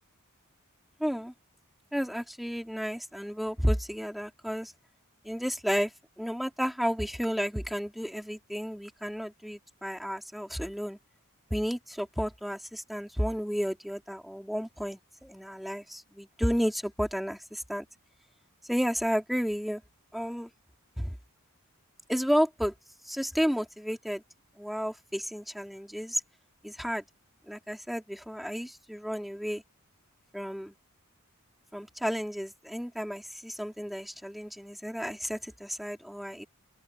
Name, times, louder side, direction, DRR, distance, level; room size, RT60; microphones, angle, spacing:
voice 1, 1.0-1.3 1.9-4.7 5.2-5.9 6.2-11.0 11.5-17.9 18.7-19.8 20.1-20.5 21.0-21.2 22.1-22.7 23.0-24.2 24.6-26.2 26.6-27.0 27.5-29.6 30.3-30.7 31.7-36.4, equal, ahead, 3.7 m, -32 dB
open air
head